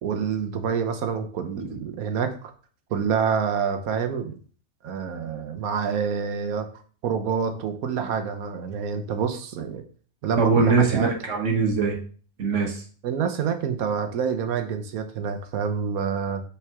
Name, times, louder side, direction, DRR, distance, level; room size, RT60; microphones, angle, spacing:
voice 1, 0.0-2.3 2.9-4.4 4.8-6.7 7.0-9.8 10.2-11.1 13.0-16.4, right 6 dB, 90° right, 7 dB, 1.3 m, -27 dB
voice 2, 10.3-12.0 12.4-12.8, right 4 dB, 60° right, 1 dB, 1.4 m, -22 dB
5.8 x 4.7 x 3.5 m, 0.42 s
omnidirectional pair, 1.5 m